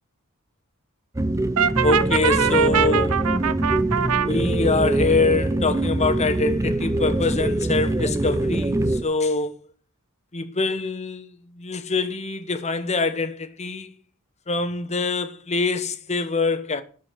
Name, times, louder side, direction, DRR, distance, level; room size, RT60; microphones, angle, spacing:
sound 1, 1.1-9.0, right 1 dB, 15° right, 0.5 m, -23 dB
Brass instrument, 1.6-4.3, right 8 dB, 70° right, 0.6 m, -22 dB
voice 1, 1.8-3.1 4.2-9.5 10.3-11.3 11.6-13.9 14.5-16.8, left 3 dB, 30° left, 1.1 m, -24 dB
12.5 x 4.9 x 8.1 m
head